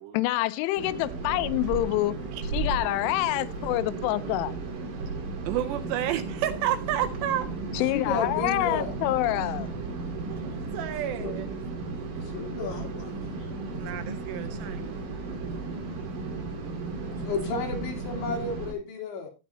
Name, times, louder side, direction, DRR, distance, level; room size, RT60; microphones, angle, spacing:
voice 1, 0.1-2.2 2.5-4.6 7.7-9.7, left 17 dB, 90° left, 3.1 m, -27 dB
sound 1, 0.8-18.7, right 3 dB, 50° right, 3.4 m, -34 dB
voice 2, 4.2-4.5 5.5-7.5 10.3-11.5 13.8-15.0, right 12 dB, 80° right, 2.6 m, -31 dB
voice 3, 7.9-9.0 11.0-11.3 12.2-13.2 17.2-19.3, left 4 dB, 70° left, 5.2 m, -32 dB
13.5 x 9.9 x 2.7 m
omnidirectional pair, 5.4 m